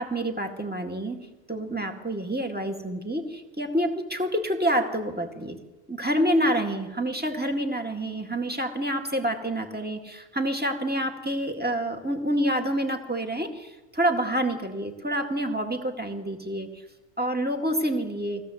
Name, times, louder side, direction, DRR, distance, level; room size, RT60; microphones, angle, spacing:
voice 1, 0.0-5.6 5.9-16.7 17.2-18.4, right 1 dB, 10° right, 3 dB, 2.1 m, -28 dB
23.0 x 17.0 x 8.0 m, 1.1 s
omnidirectional pair, 1.1 m